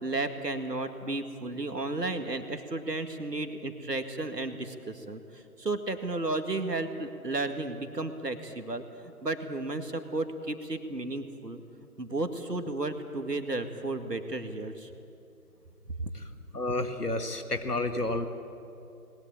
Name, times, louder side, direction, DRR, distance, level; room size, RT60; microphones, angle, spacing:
voice 1, 0.0-11.6 12.0-14.9, right 2 dB, 80° right, 7 dB, 2.1 m, -33 dB
voice 2, 16.5-18.3, left 2 dB, 70° left, 7 dB, 2.1 m, -30 dB
20.5 x 20.0 x 8.6 m, 2.7 s
figure-of-eight pair, 160°, 48 cm